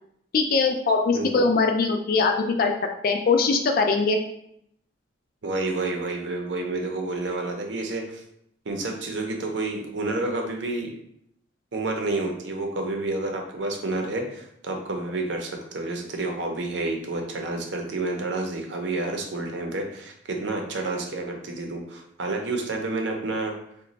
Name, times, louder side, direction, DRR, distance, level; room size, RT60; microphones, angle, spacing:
voice 1, 0.3-2.7 3.0-4.2, left 4 dB, 50° left, 4 dB, 0.3 m, -21 dB
voice 2, 5.4-8.2 8.7-10.9 11.7-23.5, right 2 dB, 70° right, 2 dB, 0.6 m, -29 dB
3.0 x 2.2 x 3.9 m, 0.72 s
head